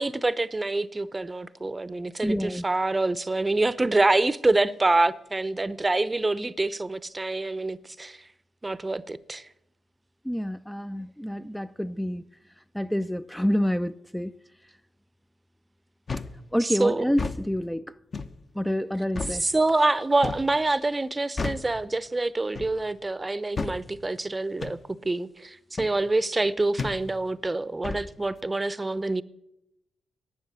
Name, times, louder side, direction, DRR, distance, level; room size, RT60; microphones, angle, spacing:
voice 1, 0.0-8.2 8.6-9.5 16.6-17.1 19.4-29.2, right 2 dB, 25° right, 0.7 m, -26 dB
voice 2, 2.2-2.6 10.2-12.2 12.7-14.3 16.5-18.0 18.6-19.5, equal, 5° left, 0.4 m, -28 dB
sound 1, 16.1-16.4 17.1-17.4 18.1-18.4 19.1-19.4 20.2-20.5 21.4-21.7 22.5-22.8 23.6-23.8 24.6-24.8 25.8-26.0 26.8-27.0 27.8-28.1, left 4 dB, 45° left, 0.9 m, -32 dB
11.5 x 9.4 x 8.1 m
hypercardioid pair, 40°, 0 cm